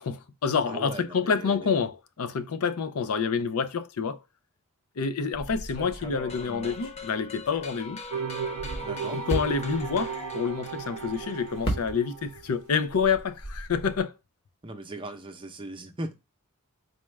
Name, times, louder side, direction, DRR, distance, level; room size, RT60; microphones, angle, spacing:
voice 1, 0.0-4.2 5.0-8.0 9.1-14.1, left 5 dB, 80° left, 0.5 m, -28 dB
voice 2, 0.7-1.8 8.8-9.2 14.6-16.2, right 1 dB, 25° right, 0.6 m, -38 dB
sound 1, 5.3-8.0 8.4-12.4 12.7-14.0, right 1 dB, 45° left, 1.1 m, -37 dB
sound 2, 6.3-11.9, left 3 dB, 30° left, 0.5 m, -42 dB
sound 3, 8.1-12.7, right 7 dB, 80° right, 0.3 m, -36 dB
4.2 x 2.3 x 3.1 m
head